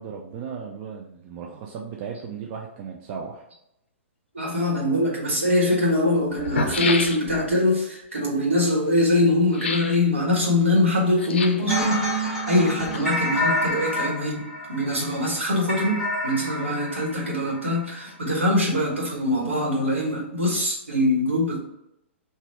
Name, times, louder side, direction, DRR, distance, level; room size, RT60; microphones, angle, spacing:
voice 1, 0.0-3.5, right 6 dB, 35° right, -1 dB, 0.5 m, -36 dB
voice 2, 4.3-21.6, left 1 dB, 75° right, -2 dB, 1.5 m, -23 dB
sound 1, 5.0-5.1 6.0-6.1 6.3-7.6 9.5-10.0 11.2-11.7 12.6-13.4 13.7-13.8, left 4 dB, 55° left, 0.5 m, -29 dB
sound 2, 11.7-17.8, equal, 5° right, 1.6 m, -28 dB
4.0 x 2.6 x 4.6 m, 0.82 s
figure-of-eight pair, 110°, 7 cm